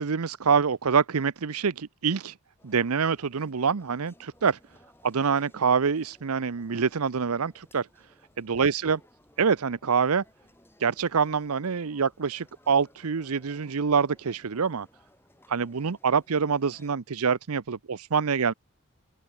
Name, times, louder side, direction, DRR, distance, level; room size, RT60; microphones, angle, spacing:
voice 1, 0.0-2.3 2.6-4.6 5.0-7.9 8.4-9.0 9.4-10.2 10.8-14.9 15.5-18.5, right 6 dB, 85° right, 0.7 m, -25 dB
sound 1, 2.6-16.9, left 1 dB, 10° left, 4.2 m, -61 dB
open air
head